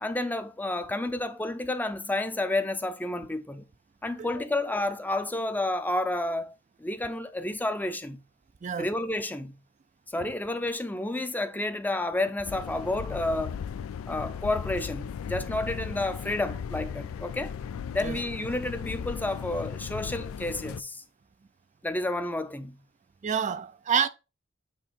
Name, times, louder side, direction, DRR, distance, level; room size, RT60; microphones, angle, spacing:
voice 1, 0.0-3.6 4.0-8.2 8.8-9.5 10.1-13.6 14.1-17.5 17.9-21.0 21.8-22.8, left 2 dB, 10° left, 0.6 m, -30 dB
sound 1, 12.4-20.8, left 7 dB, 75° left, 0.4 m, -36 dB
voice 2, 23.2-24.1, right 7 dB, 35° right, 0.4 m, -28 dB
8.7 x 2.9 x 5.1 m
head